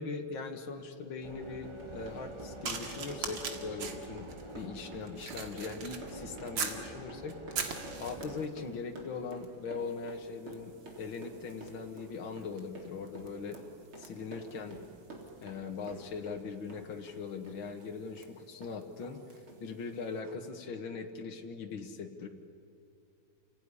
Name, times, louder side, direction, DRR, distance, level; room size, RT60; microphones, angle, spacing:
voice 1, 0.0-4.3 4.5-13.6 14.0-14.8 15.4-19.2 19.6-22.3, left 4 dB, 75° left, 4 dB, 2.4 m, -40 dB
sound 1, 1.2-8.5, right 1 dB, 15° right, 1.2 m, -47 dB
Run, 1.6-16.4 16.7-18.3 18.6-18.7 19.0-19.2 19.5-19.6, right 3 dB, 85° right, 4.5 m, -49 dB
sound 2, 2.6-6.9 7.3-8.5 9.3-9.5 9.8-19.5 20.2-20.4, right 5 dB, 65° right, 2.6 m, -43 dB
29.0 x 17.5 x 9.9 m, 2.6 s
omnidirectional pair, 2.2 m